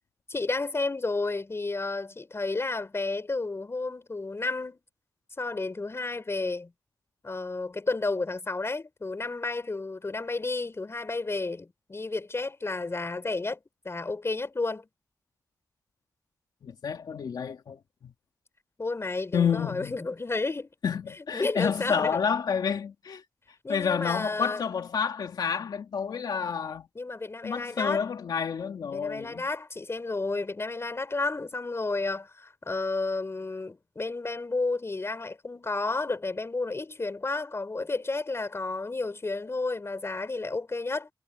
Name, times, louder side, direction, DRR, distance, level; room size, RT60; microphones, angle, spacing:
voice 1, 0.3-4.8 5.4-6.7 7.2-14.9 18.8-20.7 21.3-22.2 23.6-24.6 27.0-28.1 28.9-41.1, left 3 dB, 40° left, 5.4 m, -31 dB
voice 2, 16.6-18.1 19.3-19.9 20.8-23.2 23.7-26.9 27.4-29.4, left 6 dB, 85° left, 2.4 m, -29 dB
cardioid pair, 70°, 7 cm